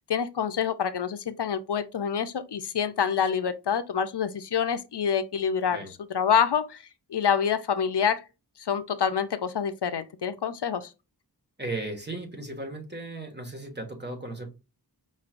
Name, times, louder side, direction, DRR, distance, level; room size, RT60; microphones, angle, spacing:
voice 1, 0.1-5.8 6.1-6.8 7.1-8.2 8.6-10.9, left 7 dB, 80° left, 0.5 m, -26 dB
voice 2, 11.6-14.5, right 2 dB, 25° right, 1.6 m, -36 dB
5.3 x 3.2 x 2.5 m
wide cardioid pair, 40°, 40 cm